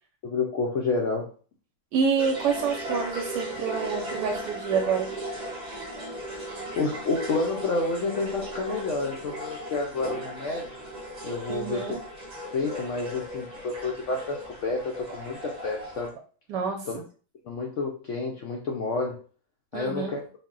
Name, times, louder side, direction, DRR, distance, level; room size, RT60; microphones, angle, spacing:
voice 1, 0.2-1.3 6.3-10.8 11.2-12.0 12.5-16.1 16.9-17.0 17.4-19.2 19.7-20.2, left 3 dB, 75° left, 0 dB, 0.7 m, -29 dB
voice 2, 1.9-5.1 11.5-12.0 16.5-17.0 19.7-20.1, right 6 dB, 75° right, 3 dB, 1.2 m, -27 dB
sound 1, 2.2-16.1, equal, 30° right, 1.0 m, -36 dB
4.0 x 2.1 x 3.7 m, 0.39 s
omnidirectional pair, 1.9 m